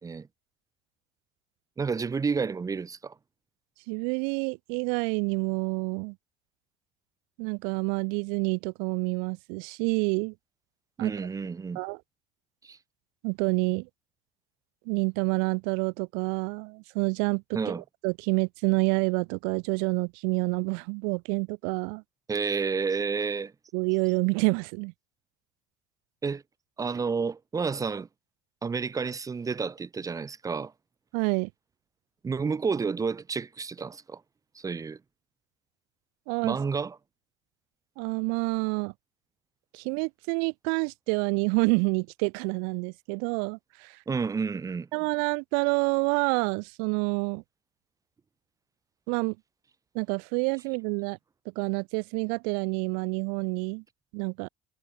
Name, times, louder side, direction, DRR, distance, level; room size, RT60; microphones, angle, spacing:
voice 1, 1.8-3.2 11.0-11.8 12.6-12.8 17.5-17.8 22.3-23.5 26.2-26.4 26.8-28.1 28.6-30.7 32.2-34.2 34.5-35.0 36.4-37.0 44.1-44.9, right 5 dB, 25° right, 0.9 m, -30 dB
voice 2, 3.9-6.2 7.4-10.3 11.0-11.1 11.7-12.0 13.2-13.9 14.9-22.0 23.7-24.9 31.1-31.5 36.3-36.6 38.0-38.9 39.7-44.0 44.9-47.4 49.1-49.4 49.9-51.2 51.6-53.8 54.1-54.5, right 40 dB or more, 75° right, 0.5 m, -28 dB
supercardioid pair, 85°, 15 cm